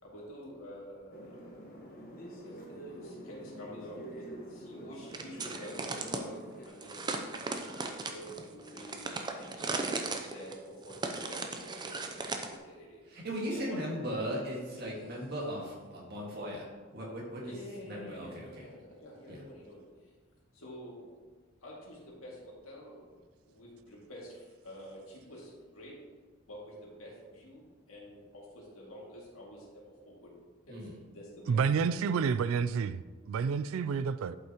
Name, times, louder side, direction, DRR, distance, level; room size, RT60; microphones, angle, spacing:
voice 1, 0.0-7.5 7.8-13.1 13.5-13.9 17.4-20.1 20.5-21.1 21.6-23.1 23.5-26.0 26.5-30.4 30.7-32.1, equal, 85° left, -4 dB, 2.3 m, -49 dB
sound 1, 1.1-6.7, right 1 dB, 45° left, 1.2 m, -47 dB
sound 2, 5.1-6.2 6.8-12.6, right 3 dB, 20° right, 0.5 m, -37 dB
voice 2, 13.1-16.6 16.9-17.5 17.9-18.3 19.3-19.4 30.7-30.9, equal, 50° right, -3 dB, 1.9 m, -37 dB
voice 3, 31.5-33.0 33.3-34.4, right 6 dB, 75° right, 15 dB, 0.3 m, -29 dB
11.5 x 5.5 x 3.0 m, 1.4 s
head